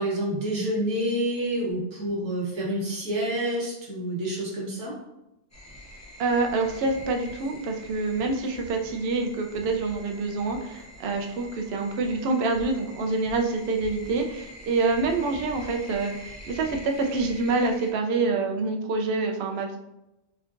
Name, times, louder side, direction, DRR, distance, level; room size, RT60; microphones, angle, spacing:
voice 1, 0.0-4.9, right 1 dB, 80° right, -5 dB, 1.4 m, -28 dB
sound 1, 5.5-17.9, equal, 20° left, 0.5 m, -45 dB
voice 2, 6.2-19.8, right 3 dB, 65° right, 3 dB, 0.7 m, -26 dB
3.8 x 3.3 x 2.5 m, 0.90 s
omnidirectional pair, 1.4 m